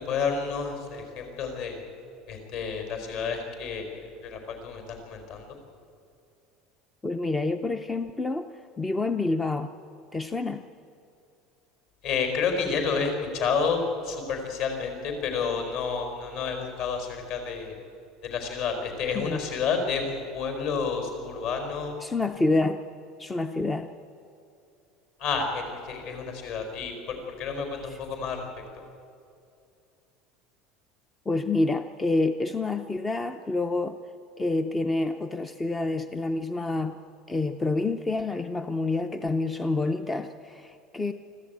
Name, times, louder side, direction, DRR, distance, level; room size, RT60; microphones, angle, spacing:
voice 1, 0.0-1.8 2.3-3.9 4.2-5.5 12.0-17.7 18.2-21.9 25.2-28.5, left 5 dB, 55° left, 4 dB, 4.7 m, -30 dB
voice 2, 7.0-8.5 8.8-9.7 10.1-10.6 19.1-19.4 22.0-22.8 23.2-23.9 27.8-28.0 31.3-34.0 34.4-36.9 37.3-41.1, left 2 dB, 10° left, 9 dB, 0.5 m, -28 dB
24.5 x 15.0 x 9.4 m, 2.6 s
cardioid pair, 180°, 0 cm